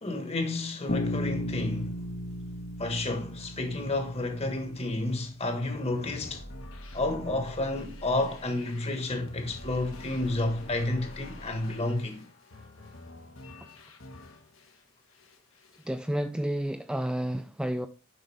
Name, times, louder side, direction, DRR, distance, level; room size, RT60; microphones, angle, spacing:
voice 1, 0.0-2.0 2.8-6.4 6.9-12.2, left 2 dB, 30° left, 1.5 m, -31 dB
Bass guitar, 0.9-4.8, left 1 dB, 55° left, 1.3 m, -34 dB
sound 1, 5.6-14.8 15.1-15.9, left 1 dB, 75° left, 1.6 m, -46 dB
voice 2, 15.8-17.9, right 1 dB, 5° right, 0.3 m, -30 dB
7.5 x 5.5 x 3.4 m
head